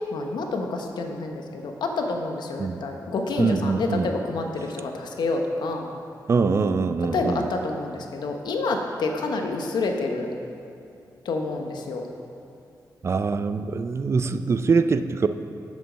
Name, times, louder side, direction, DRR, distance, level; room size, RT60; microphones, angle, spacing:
voice 1, 0.1-5.9 7.1-10.3 11.2-12.1, left 3 dB, 80° left, 3 dB, 1.0 m, -28 dB
voice 2, 3.4-4.1 6.3-7.5 13.0-15.3, right 4 dB, 40° right, 10 dB, 0.4 m, -23 dB
8.2 x 7.5 x 6.3 m, 2.6 s
wide cardioid pair, 110°, 7 cm